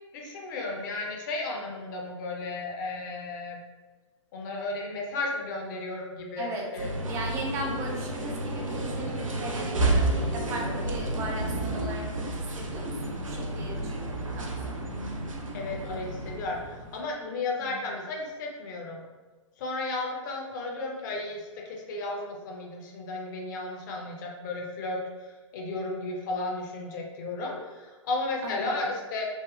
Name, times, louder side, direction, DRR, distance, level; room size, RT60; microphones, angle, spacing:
voice 1, 0.1-3.6 4.3-6.9 7.7-7.8 15.5-19.0 19.6-29.3, left 2 dB, 35° left, 0 dB, 0.6 m, -34 dB
voice 2, 6.4-6.7 7.1-14.9 17.6-17.8 28.4-28.7, right 2 dB, 15° right, 0 dB, 0.4 m, -38 dB
sound 1, 6.8-17.0, right 1 dB, 80° right, 0.5 m, -31 dB
3.4 x 2.1 x 2.3 m, 1.3 s
figure-of-eight pair, 115°, 17 cm